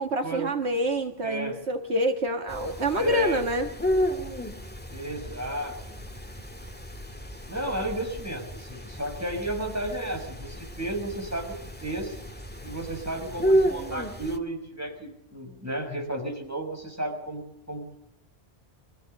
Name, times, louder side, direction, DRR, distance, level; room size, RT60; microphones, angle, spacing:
voice 1, 0.0-3.7, right 1 dB, 75° right, 5 dB, 2.0 m, -27 dB
voice 2, 1.2-1.5 2.9-3.4 4.9-6.0 7.5-11.6 11.8-12.2 12.6-17.4 17.7-18.0, right 1 dB, 15° right, 1 dB, 6.2 m, -33 dB
sound 1, 2.5-14.4, equal, 10° left, 1.8 m, -32 dB
25.0 x 16.0 x 6.8 m, 0.80 s
omnidirectional pair, 1.1 m